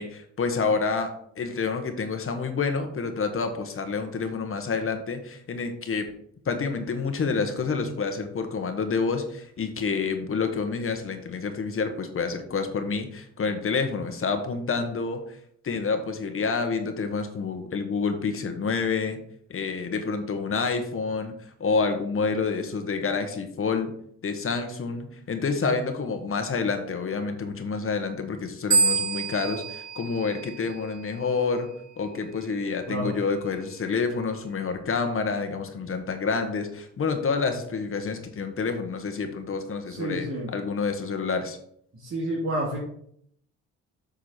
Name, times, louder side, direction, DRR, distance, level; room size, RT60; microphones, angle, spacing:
voice 1, 0.0-6.1 6.4-15.4 15.6-19.2 19.5-21.3 21.6-23.9 24.2-31.7 32.0-41.6, left 4 dB, 45° left, 7 dB, 1.4 m, -28 dB
sound 1, 28.7-31.2, right 4 dB, 75° right, 1.1 m, -27 dB
voice 2, 32.9-33.2 39.9-40.5 41.9-42.8, right 1 dB, 50° right, -6 dB, 2.9 m, -30 dB
8.0 x 6.5 x 4.4 m, 0.68 s
cardioid pair, 90°, 30 cm